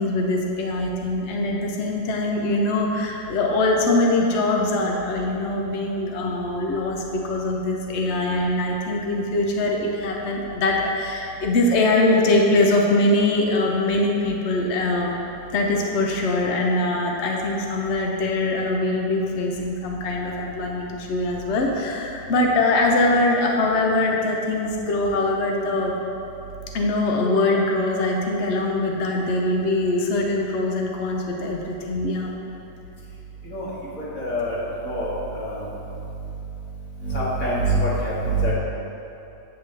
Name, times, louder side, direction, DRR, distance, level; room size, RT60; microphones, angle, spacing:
voice 1, 0.0-15.1 15.5-25.9 26.7-32.3, left 2 dB, 70° left, 0 dB, 0.6 m, -22 dB
voice 2, 34.0-34.6 34.8-35.6 37.0-38.5, right 1 dB, 45° left, -8 dB, 2.1 m, -25 dB
8.3 x 7.8 x 3.3 m, 2.9 s
omnidirectional pair, 2.1 m